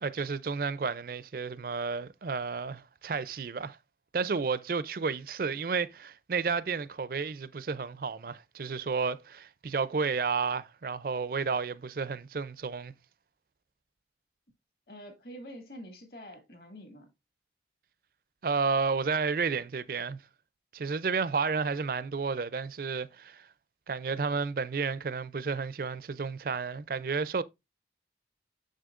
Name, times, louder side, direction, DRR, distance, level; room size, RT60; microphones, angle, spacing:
voice 1, 0.0-3.8 4.1-12.9 18.4-20.2 20.7-23.5 23.9-27.4, right 5 dB, 50° right, 0.4 m, -31 dB
voice 2, 14.9-17.1, equal, 55° left, 2.1 m, -46 dB
6.6 x 6.3 x 2.4 m
head